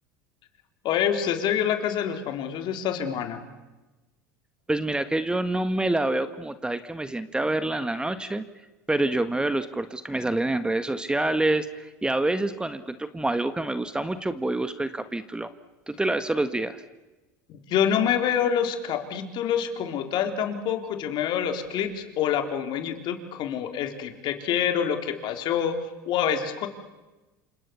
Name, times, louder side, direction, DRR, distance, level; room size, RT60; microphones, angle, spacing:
voice 1, 0.8-3.5 17.5-26.7, left 8 dB, 55° left, 6 dB, 4.0 m, -26 dB
voice 2, 4.7-8.4 8.9-15.5 15.9-16.8, right 2 dB, 10° right, 11 dB, 1.6 m, -27 dB
29.5 x 26.5 x 7.1 m, 1.1 s
hypercardioid pair, 85°, 9 cm